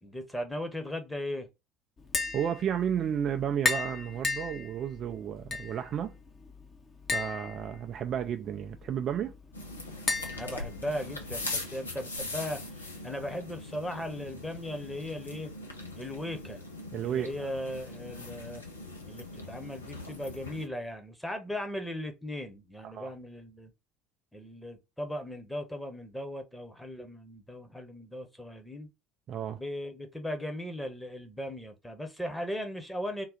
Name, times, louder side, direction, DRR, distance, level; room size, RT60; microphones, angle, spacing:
voice 1, 0.0-1.5 10.3-12.6 13.0-15.5 16.0-16.6 17.0-18.6 19.1-23.7 24.3-28.9 29.5-33.3, left 1 dB, 5° left, 1.0 m, -37 dB
Tap, 2.0-11.5, left 4 dB, 35° left, 0.9 m, -37 dB
voice 2, 2.3-6.1 7.1-9.3 16.9-17.3 22.8-23.1 29.3-29.6, right 9 dB, 40° right, 0.4 m, -32 dB
sound 1, 9.5-20.7, left 2 dB, 80° left, 0.6 m, -41 dB
3.8 x 2.3 x 3.9 m
figure-of-eight pair, 60°, 0 cm